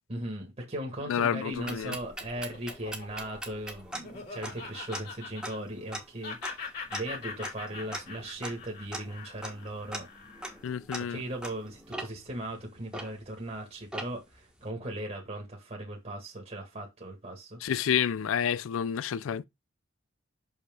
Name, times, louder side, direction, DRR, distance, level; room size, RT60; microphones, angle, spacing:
voice 1, 0.1-10.1 11.1-17.6, right 1 dB, 35° right, 1.7 m, -38 dB
voice 2, 1.1-2.0 10.6-11.2 17.6-19.4, left 8 dB, 75° left, 0.4 m, -29 dB
sound 1, 1.5-13.5 13.9-14.4, right 1 dB, 5° right, 1.5 m, -42 dB
Laughter, 2.0-5.9 6.2-10.7, left 5 dB, 55° left, 3.2 m, -43 dB
6.0 x 5.8 x 3.6 m
head